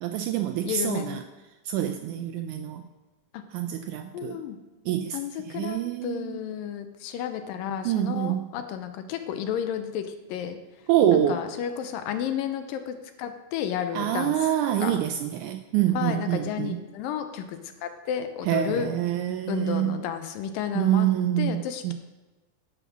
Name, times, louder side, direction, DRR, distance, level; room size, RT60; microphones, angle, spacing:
voice 1, 0.0-1.2 1.7-2.8 3.5-4.4 4.9-5.2 5.5-6.5 7.9-8.4 10.9-11.4 14.0-16.8 18.5-20.0 20.8-21.9, right 11 dB, 85° right, 7 dB, 1.8 m, -26 dB
voice 2, 0.7-1.2 3.3-3.4 4.1-4.6 5.1-10.6 11.1-14.4 14.8-15.0 15.9-18.9 19.5-21.1 21.4-21.9, left 9 dB, 85° left, 8 dB, 2.5 m, -32 dB
11.0 x 7.0 x 6.0 m, 1.2 s
omnidirectional pair, 4.0 m